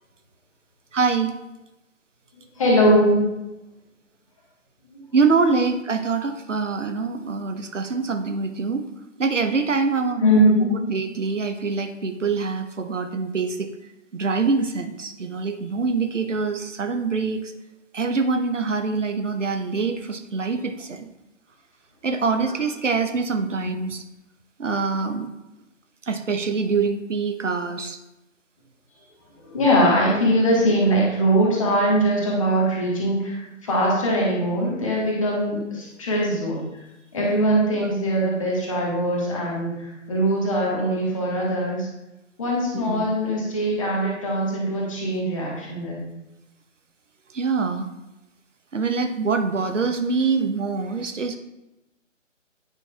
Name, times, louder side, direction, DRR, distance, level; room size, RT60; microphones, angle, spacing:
voice 1, 0.9-1.3 5.1-8.9 9.2-10.5 10.9-13.7 14.1-17.5 17.9-21.1 22.0-24.0 24.6-25.3 26.1-28.0 37.8-38.0 42.7-43.1 47.3-47.9 48.7-51.4, right 4 dB, 70° right, 7 dB, 0.7 m, -24 dB
voice 2, 2.6-3.2 4.9-5.0 10.2-10.7 29.4-36.7 37.1-41.9 42.4-46.0, equal, 25° left, -3 dB, 1.2 m, -21 dB
9.0 x 5.3 x 2.3 m, 0.94 s
figure-of-eight pair, 145°, 39 cm